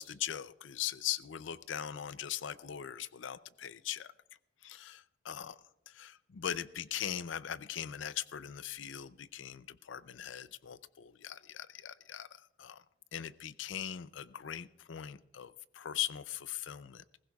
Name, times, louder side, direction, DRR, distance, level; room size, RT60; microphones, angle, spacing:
voice 1, 0.0-4.1 4.6-5.6 5.9-12.8 13.1-17.0, left 10 dB, 90° left, 16 dB, 0.5 m, -40 dB
21.0 x 15.5 x 2.3 m, 0.86 s
head